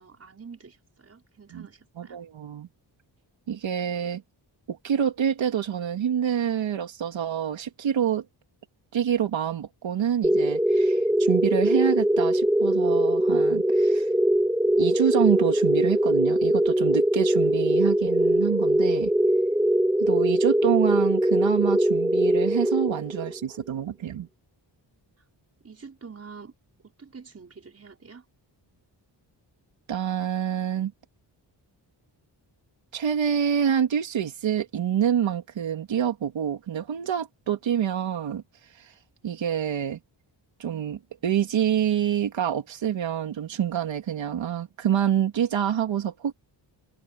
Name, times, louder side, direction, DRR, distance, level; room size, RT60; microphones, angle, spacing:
voice 1, 0.0-2.2 23.4-23.7 25.6-26.5 27.0-28.2, right 5 dB, 35° right, 5.4 m, -46 dB
voice 2, 2.0-2.7 3.5-4.2 4.7-8.2 8.9-14.1 14.8-19.1 20.0-24.3 29.9-30.9 32.9-38.4 38.7-38.9 39.2-40.0 40.6-46.3, right 9 dB, 85° right, 2.4 m, -27 dB
sound 1, 10.2-23.4, right 1 dB, 5° right, 1.9 m, -22 dB
wide cardioid pair, 140°, 44 cm